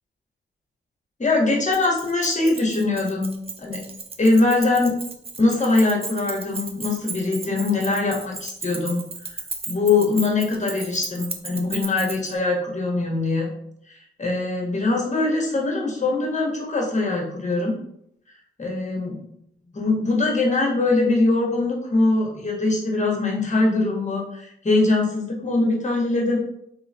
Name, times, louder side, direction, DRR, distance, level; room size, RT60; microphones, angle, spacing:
voice 1, 1.2-3.3 3.6-3.8 4.2-4.9 5.4-9.0 9.3-9.4 9.7-13.5 13.8-17.7 18.6-19.2 19.7-26.4, left 2 dB, 35° left, -2 dB, 1.3 m, -22 dB
Keys jangling, 1.7-12.3, right 3 dB, 25° right, 0.7 m, -35 dB
3.2 x 3.0 x 2.7 m, 0.74 s
supercardioid pair, 50°, 21 cm